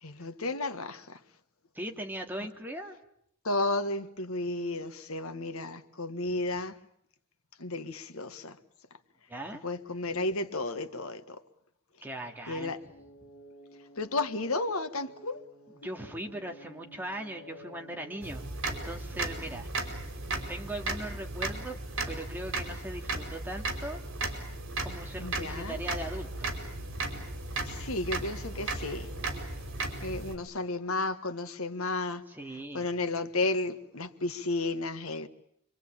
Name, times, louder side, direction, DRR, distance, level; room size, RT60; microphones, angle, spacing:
voice 1, 0.0-1.2 3.4-6.8 7.6-8.6 9.6-11.4 12.5-12.8 14.0-15.4 15.8-15.9 25.2-25.8 27.6-29.1 30.0-32.2 32.7-35.3, left 2 dB, 80° left, 1.6 m, -33 dB
voice 2, 1.7-3.0 9.3-9.6 12.0-12.7 15.7-19.9 20.5-21.8 22.1-24.0 24.8-26.6 32.3-32.9, right 1 dB, 10° right, 2.5 m, -39 dB
sound 1, 12.8-19.4, right 1 dB, 50° left, 5.1 m, -52 dB
sound 2, 18.2-30.4, right 2 dB, 65° right, 5.1 m, -36 dB
26.0 x 24.5 x 8.8 m
head